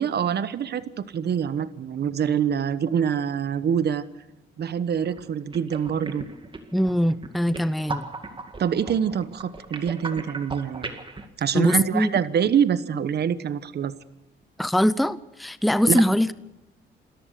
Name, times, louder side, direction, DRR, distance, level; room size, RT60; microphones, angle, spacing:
voice 1, 0.0-4.0 4.6-6.2 8.6-10.9 11.4-13.9 15.9-16.0, right 8 dB, 55° right, 14 dB, 1.2 m, -25 dB
sound 1, 5.0-5.2 5.5-11.3, right 3 dB, 25° right, 2.2 m, -37 dB
voice 2, 6.7-8.1 11.5-12.1 14.6-16.3, equal, ahead, 16 dB, 0.6 m, -22 dB
27.0 x 14.0 x 6.8 m, 0.91 s
cardioid pair, 90°, 20 cm